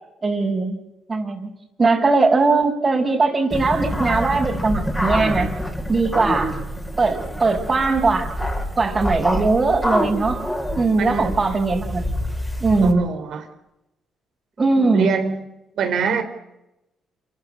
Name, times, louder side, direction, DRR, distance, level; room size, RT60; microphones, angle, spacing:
voice 1, 0.2-0.8 1.1-1.5 1.8-5.5 5.9-6.5 7.0-8.3 8.8-10.4 10.8-12.0 12.6-13.0 14.6-15.1, right 3 dB, 30° right, -3 dB, 4.9 m, -19 dB
sound 1, 3.5-12.9, equal, 10° left, 6.2 m, -27 dB
voice 2, 11.0-11.4 12.8-13.4 14.8-15.4 15.8-16.2, right 6 dB, 70° right, 6 dB, 3.7 m, -24 dB
28.0 x 14.0 x 9.9 m, 0.91 s
cardioid pair, 90°, 0 cm